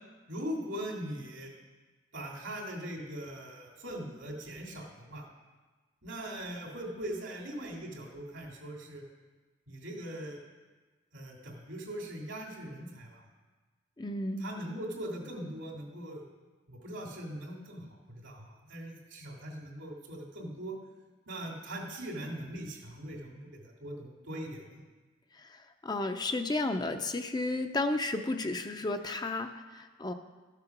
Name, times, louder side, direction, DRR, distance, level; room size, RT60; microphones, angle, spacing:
voice 1, 0.3-1.5 2.1-5.3 6.0-9.0 9.7-10.4 11.1-13.2 14.4-16.2 16.7-20.8 21.3-24.6, right 1 dB, 85° right, 0 dB, 2.6 m, -41 dB
voice 2, 14.0-14.5 25.4-30.1, left 2 dB, 20° left, 7 dB, 0.5 m, -33 dB
13.5 x 6.8 x 5.9 m, 1.3 s
head